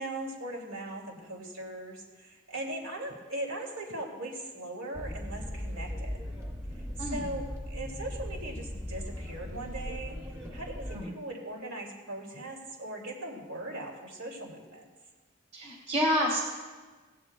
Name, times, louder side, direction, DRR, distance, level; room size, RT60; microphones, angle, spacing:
voice 1, 0.0-6.2 7.1-10.2 10.5-14.9, right 1 dB, 70° right, 0 dB, 2.5 m, -39 dB
sound 1, 4.9-11.0, equal, 15° right, 2.2 m, -38 dB
voice 2, 7.0-7.3 10.9-11.1 15.5-16.4, equal, 30° right, -1 dB, 1.7 m, -28 dB
17.0 x 16.0 x 2.3 m, 1.3 s
head